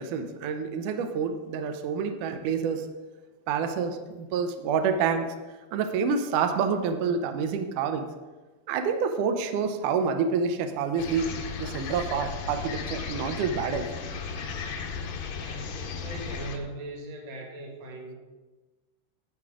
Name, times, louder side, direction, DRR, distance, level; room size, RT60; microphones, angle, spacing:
voice 1, 0.0-2.9 3.5-5.3 5.7-8.1 8.7-13.9, right 6 dB, 75° right, 7 dB, 1.9 m, -28 dB
sound 1, 11.0-16.6, left 5 dB, 70° left, 1.7 m, -35 dB
voice 2, 15.4-18.1, right 2 dB, 50° right, 1 dB, 2.6 m, -40 dB
12.0 x 7.9 x 4.8 m, 1.2 s
omnidirectional pair, 4.5 m